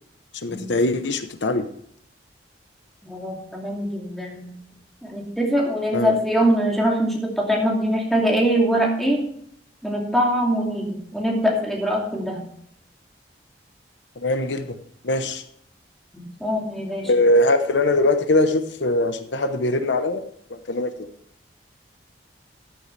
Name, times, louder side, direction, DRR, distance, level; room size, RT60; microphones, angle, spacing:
voice 1, 0.4-1.7 5.9-6.2 14.2-14.8 15.0-15.4 17.0-21.1, left 2 dB, 80° left, 9 dB, 0.9 m, -22 dB
voice 2, 3.0-4.6 5.0-9.2 9.8-12.4 16.1-17.1, equal, ahead, -2 dB, 2.6 m, -23 dB
14.0 x 9.3 x 3.3 m, 0.67 s
head